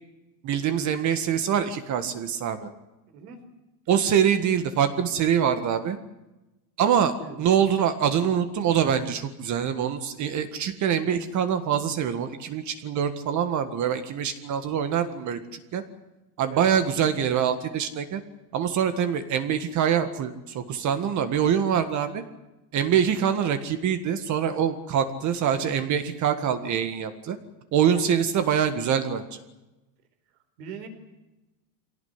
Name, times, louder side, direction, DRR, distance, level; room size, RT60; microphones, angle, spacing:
voice 1, 0.4-2.7 3.9-6.0 6.8-15.8 16.4-18.2 18.5-22.2 22.7-27.4 27.7-29.4, right 8 dB, 35° right, 9 dB, 1.8 m, -24 dB
voice 2, 3.1-3.4 7.2-7.5 16.5-16.7 28.0-28.2 30.6-30.9, right 7 dB, 70° right, 7 dB, 5.1 m, -40 dB
24.0 x 18.0 x 9.7 m, 1.0 s
supercardioid pair, 150°, 50 cm